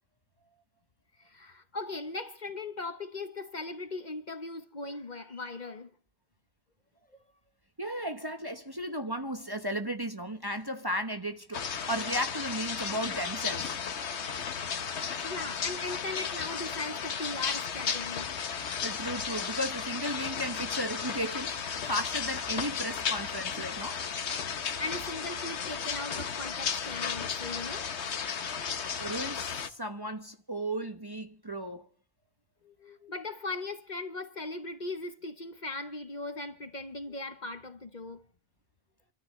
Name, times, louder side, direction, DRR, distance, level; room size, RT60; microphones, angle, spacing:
voice 1, 1.2-5.9 14.6-14.8 15.2-18.3 24.6-28.0 32.6-38.2, left 2 dB, 40° left, 1.1 m, -39 dB
voice 2, 7.8-13.7 18.8-24.0 29.0-31.9, equal, 20° right, 1.0 m, -35 dB
sound 1, 11.5-29.7, left 6 dB, 70° left, 1.3 m, -34 dB
28.0 x 13.0 x 3.2 m
omnidirectional pair, 1.2 m